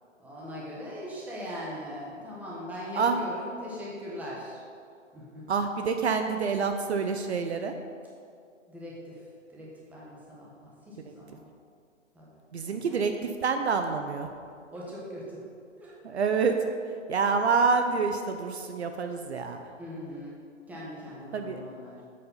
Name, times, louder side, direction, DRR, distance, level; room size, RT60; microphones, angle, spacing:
voice 1, 0.2-4.6 5.1-5.5 8.7-11.4 12.1-12.3 12.6-13.0 14.7-15.4 15.8-16.0 19.8-20.4 20.7-22.0, equal, 5° right, -6 dB, 1.3 m, -40 dB
voice 2, 5.5-7.7 11.1-11.2 12.5-14.3 16.0-16.6 17.1-19.6 21.3-21.6, right 5 dB, 60° right, 6 dB, 0.8 m, -27 dB
7.7 x 7.6 x 5.5 m, 2.3 s
hypercardioid pair, 145°, 38 cm